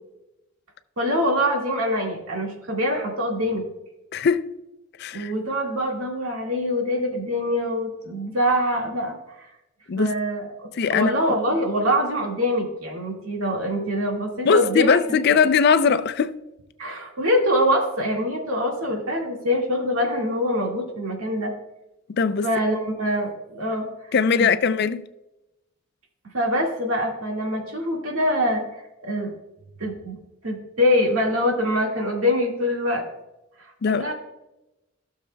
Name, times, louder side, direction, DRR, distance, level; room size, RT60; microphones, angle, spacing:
voice 1, 1.0-3.6 5.1-9.5 9.9-15.0 15.3-15.4 16.8-21.5 22.4-23.9 24.4-24.5 26.3-29.3 29.8-33.0 33.6-34.1, equal, 85° right, 1.8 m, -24 dB
voice 2, 4.1-4.5 5.0-5.3 9.9-10.1 10.8-11.1 14.4-16.3 22.2-22.5 24.1-25.0 33.8-34.1, left 5 dB, 50° left, 0.4 m, -20 dB
16.0 x 6.5 x 2.2 m
head